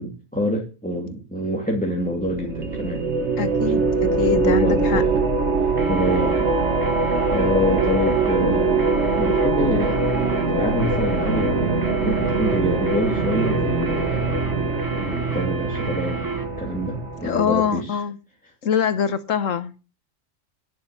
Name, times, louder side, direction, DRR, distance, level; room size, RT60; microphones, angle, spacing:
voice 1, 0.0-3.0 3.8-3.9 4.3-5.2 5.6-6.5 7.0-8.8 9.1-10.1 10.5-11.8 12.0-14.4 15.0-16.2 16.6-18.0, equal, 5° left, 2.6 m, -26 dB
sound 1, 2.1-17.6, right 3 dB, 55° right, 2.0 m, -23 dB
voice 2, 3.4-5.0 17.2-18.2 18.6-19.9, left 7 dB, 70° left, 1.3 m, -24 dB
sound 2, 5.8-16.5, right 4 dB, 15° right, 0.9 m, -32 dB
11.0 x 9.8 x 7.3 m
omnidirectional pair, 1.4 m